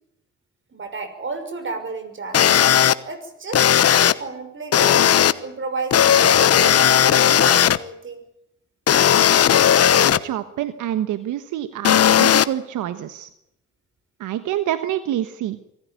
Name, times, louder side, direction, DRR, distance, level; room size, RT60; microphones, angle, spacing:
voice 1, 0.7-2.5 3.0-8.2, right 4 dB, 40° right, 9 dB, 6.1 m, -32 dB
sound 1, 2.3-2.9 3.5-4.1 4.7-5.3 5.9-7.8 8.9-10.2 11.8-12.4, left 9 dB, 55° left, 1.1 m, -15 dB
voice 2, 10.2-13.3 14.2-15.6, right 12 dB, 85° right, 11 dB, 1.3 m, -27 dB
25.0 x 14.5 x 9.3 m, 0.80 s
cardioid pair, 90°, 30 cm